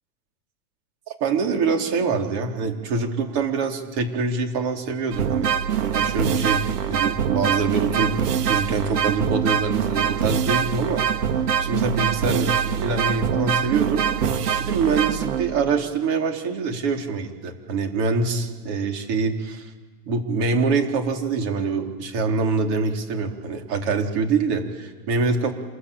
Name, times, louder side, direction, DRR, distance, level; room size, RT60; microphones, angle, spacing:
voice 1, 1.2-6.6 6.9-8.1 8.4-11.0 11.6-14.0 14.6-19.7 20.1-25.5, right 4 dB, 40° right, 3 dB, 4.0 m, -24 dB
sound 1, 5.1-15.7, right 8 dB, 80° right, 2.1 m, -24 dB
28.0 x 21.5 x 8.7 m, 1.3 s
supercardioid pair, 145°, 46 cm